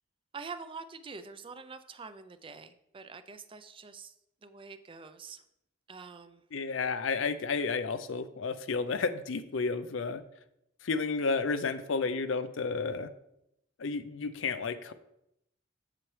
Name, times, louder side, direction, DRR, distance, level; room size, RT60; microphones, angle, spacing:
voice 1, 0.3-4.1 4.4-5.4 5.9-6.4, right 5 dB, 25° right, 10 dB, 0.4 m, -45 dB
voice 2, 6.5-10.2 10.8-13.1 13.8-14.9, left 4 dB, 70° left, 11 dB, 0.5 m, -31 dB
7.5 x 7.3 x 3.2 m, 0.80 s
head